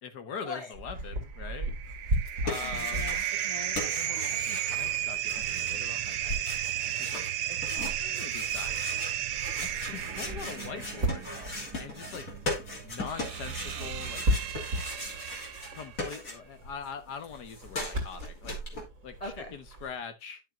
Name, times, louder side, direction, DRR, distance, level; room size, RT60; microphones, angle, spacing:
voice 1, 0.0-1.7 2.4-3.1 3.8-6.3 6.9-7.3 8.0-9.1 9.6-11.3 11.8-12.3 12.8-14.2 15.7-18.6 19.0-20.4, left 6 dB, 75° left, 1.8 m, -42 dB
sound 1, 0.7-20.0, right 1 dB, 55° right, 2.9 m, -38 dB
sound 2, 1.4-16.0, right 11 dB, 75° right, 1.4 m, -34 dB
sound 3, 2.1-3.5 3.7-16.7 17.0-18.8, left 1 dB, 55° left, 3.3 m, -39 dB
voice 2, 2.6-3.8 7.5-7.9 19.2-19.6, left 2 dB, 20° left, 2.0 m, -42 dB
12.0 x 6.5 x 2.5 m
omnidirectional pair, 1.8 m